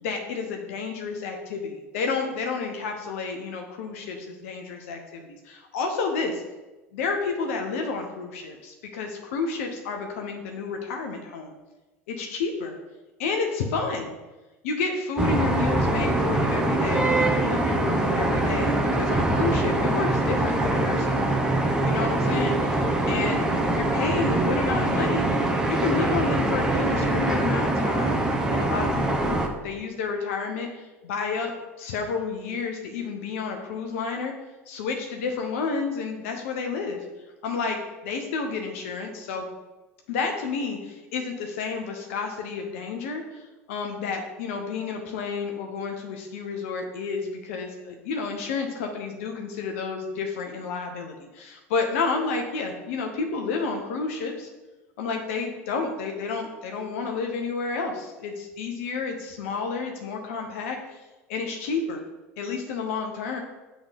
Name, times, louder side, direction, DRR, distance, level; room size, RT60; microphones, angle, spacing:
voice 1, 0.0-6.4 6.9-11.5 12.1-12.8 13.2-14.1 14.6-21.4 21.8-28.2 28.5-31.5 31.8-34.3 34.7-37.0 37.4-37.8 38.0-39.4 40.1-54.5 55.0-61.0 61.3-62.0 62.4-63.4, left 4 dB, 70° left, 3 dB, 0.9 m, -30 dB
sound 1, 15.2-29.5, right 2 dB, 10° right, 1.1 m, -23 dB
7.1 x 3.8 x 5.2 m, 1.1 s
hypercardioid pair, 75°, 8 cm